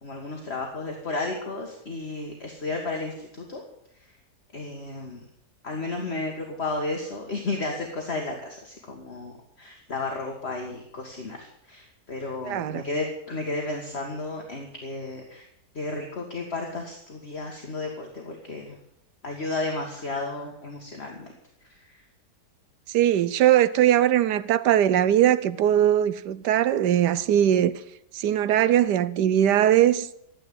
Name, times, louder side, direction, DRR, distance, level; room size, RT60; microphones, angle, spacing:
voice 1, 0.0-3.6 4.5-5.3 5.6-15.5 15.7-18.8 19.2-21.3 21.6-22.0, left 2 dB, 40° left, 2.0 m, -33 dB
voice 2, 12.4-12.8 22.9-27.8 28.1-30.1, right 11 dB, 90° right, 1.3 m, -20 dB
13.5 x 8.6 x 9.4 m
omnidirectional pair, 1.8 m